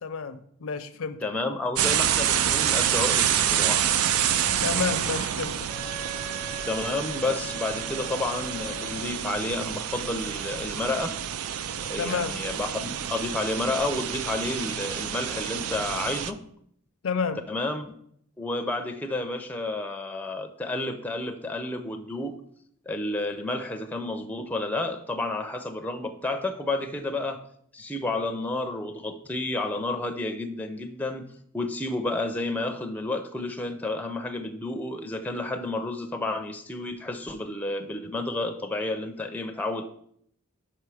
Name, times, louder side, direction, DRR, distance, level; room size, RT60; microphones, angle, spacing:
voice 1, 0.0-1.3 4.6-5.7 12.0-12.3 17.0-17.4, left 5 dB, 75° left, 11 dB, 0.5 m, -30 dB
voice 2, 1.2-3.8 6.7-11.2 11.8-16.4 17.5-17.9 18.4-22.4 22.9-27.4 27.7-31.3 31.5-39.8, left 2 dB, 5° left, 5 dB, 0.4 m, -31 dB
sound 1, 1.8-16.3, right 9 dB, 90° right, 0.4 m, -28 dB
Wind instrument woodwind instrument, 5.7-9.3, right 1 dB, 35° right, 0.8 m, -40 dB
5.6 x 5.5 x 4.8 m, 0.68 s
head